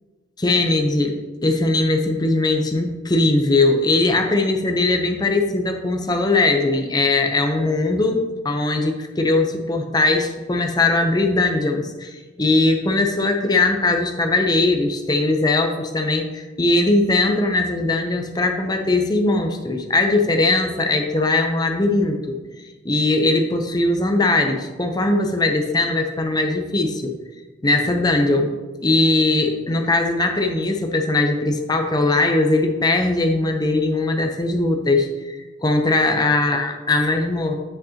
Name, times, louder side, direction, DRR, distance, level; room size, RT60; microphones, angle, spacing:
voice 1, 0.4-22.4 22.8-27.2 27.6-28.5 28.8-37.5, left 2 dB, 20° left, 4 dB, 0.6 m, -20 dB
7.9 x 6.6 x 2.8 m, 1.3 s
head